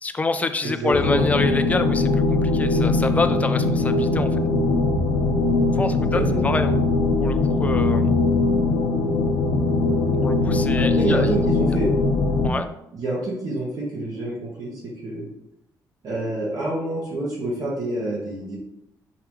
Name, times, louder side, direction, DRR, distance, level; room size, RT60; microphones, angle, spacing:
voice 1, 0.0-4.3 5.8-6.7 7.2-8.1 10.2-11.3 12.4-12.7, left 3 dB, 20° left, 9 dB, 0.4 m, -26 dB
voice 2, 0.6-1.3 6.1-6.4 10.7-11.9 12.9-15.3 16.0-18.6, right 2 dB, 55° right, -5 dB, 1.3 m, -27 dB
sound 1, 0.9-12.5, left 3 dB, 80° left, 0.6 m, -21 dB
4.7 x 3.1 x 3.6 m, 0.82 s
cardioid pair, 115°, 7 cm